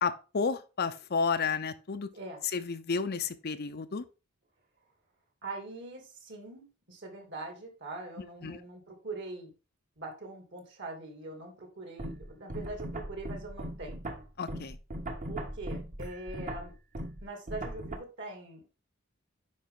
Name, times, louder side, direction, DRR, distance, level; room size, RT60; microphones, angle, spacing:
voice 1, 0.0-2.1 2.5-4.1 8.2-8.6 14.4-14.8, left 5 dB, 45° left, 11 dB, 0.6 m, -32 dB
voice 2, 5.4-9.5 10.0-14.0 15.3-16.7 17.2-18.8, right 2 dB, 55° right, 3 dB, 2.7 m, -42 dB
sound 1, 12.0-18.0, right 1 dB, 35° right, 1.2 m, -39 dB
9.4 x 5.4 x 3.8 m, 0.31 s
head